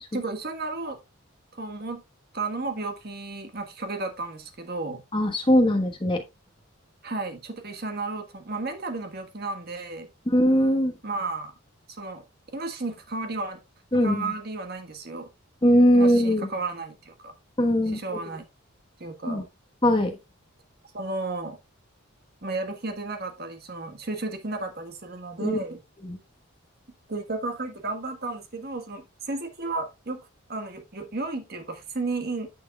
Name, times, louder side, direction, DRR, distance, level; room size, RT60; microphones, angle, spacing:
voice 1, 0.1-1.0 1.5-2.0 2.3-5.0 7.0-10.1 11.0-11.5 11.9-12.2 12.5-13.6 14.0-15.3 15.9-17.3 17.9-18.5 19.0-19.5 20.9-21.6 22.4-25.8 27.1-32.5, right 3 dB, 45° right, 1.4 m, -33 dB
voice 2, 5.1-6.2 10.3-10.9 13.9-14.2 15.6-16.5 17.6-18.2 19.3-19.4 19.8-20.1 25.4-25.6 26.0-26.2, equal, 25° left, 1.2 m, -20 dB
10.5 x 6.3 x 2.3 m
head